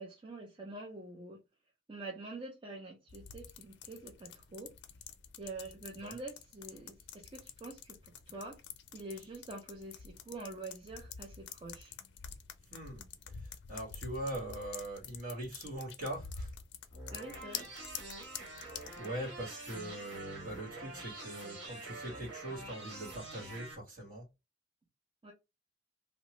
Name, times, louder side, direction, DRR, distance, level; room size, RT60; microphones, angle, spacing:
voice 1, 0.0-1.4 1.9-4.8 5.4-8.6 8.9-11.9 17.1-17.7 25.2-25.3, right 2 dB, 25° right, 0.6 m, -46 dB
sound 1, 3.1-19.1, left 7 dB, 60° left, 0.4 m, -48 dB
voice 2, 12.7-13.0 13.7-16.5 19.0-24.3, right 1 dB, 45° right, 1.7 m, -41 dB
sound 2, 16.9-23.7, right 2 dB, 60° right, 1.4 m, -46 dB
2.8 x 2.1 x 3.0 m
head